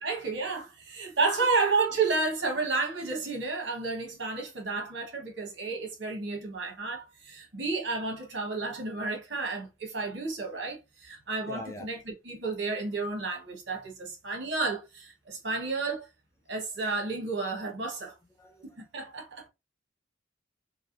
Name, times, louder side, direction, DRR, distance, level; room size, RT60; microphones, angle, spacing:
voice 1, 0.0-16.1 16.5-18.1 18.6-19.5, right 3 dB, 60° right, 1.3 m, -31 dB
voice 2, 11.4-11.9 18.4-18.6, left 1 dB, 15° left, 0.4 m, -42 dB
3.5 x 3.1 x 2.6 m
head